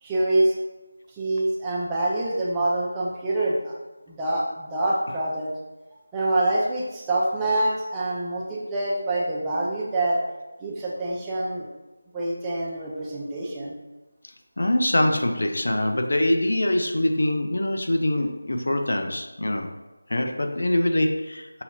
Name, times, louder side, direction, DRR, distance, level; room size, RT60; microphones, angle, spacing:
voice 1, 0.0-0.5 1.1-3.7 4.1-5.5 6.1-10.2 10.6-11.7 12.1-13.7, right 2 dB, 10° right, -5 dB, 0.4 m, -25 dB
voice 2, 14.6-19.7 20.1-21.6, left 1 dB, 70° left, 5 dB, 0.5 m, -24 dB
5.7 x 2.7 x 2.7 m, 1.1 s
figure-of-eight pair, 170°, 0 cm